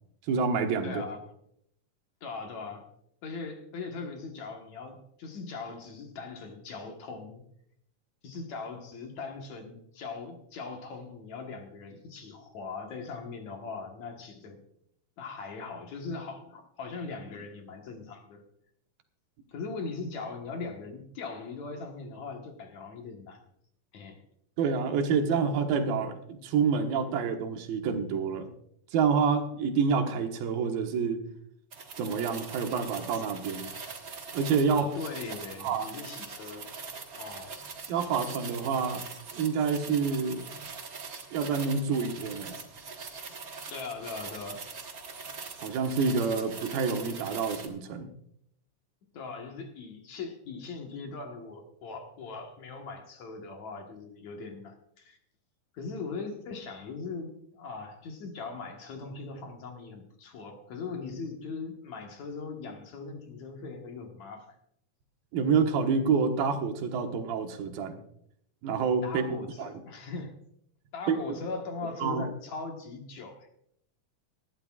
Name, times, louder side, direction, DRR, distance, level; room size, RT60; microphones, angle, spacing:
voice 1, 0.3-1.0 24.6-28.5 28.9-31.2 32.0-33.7 34.3-34.9 35.6-35.9 37.9-39.0 39.3-40.4 41.3-42.6 45.6-48.1 65.3-68.0 68.6-69.3 69.6-69.7 71.1-71.4 72.0-72.2, right 5 dB, 90° right, 5 dB, 3.1 m, -28 dB
voice 2, 0.8-1.2 2.2-2.9 3.2-7.4 8.2-14.7 15.2-18.4 19.5-23.4 23.9-24.2 34.8-36.7 37.1-37.6 43.7-44.7 49.1-55.2 55.7-64.6 69.0-70.4 70.9-73.5, left 4 dB, 60° left, 3 dB, 2.5 m, -40 dB
sound 1, 31.7-47.7, right 4 dB, 60° right, 0.9 m, -42 dB
20.0 x 13.0 x 2.4 m, 0.72 s
omnidirectional pair, 4.0 m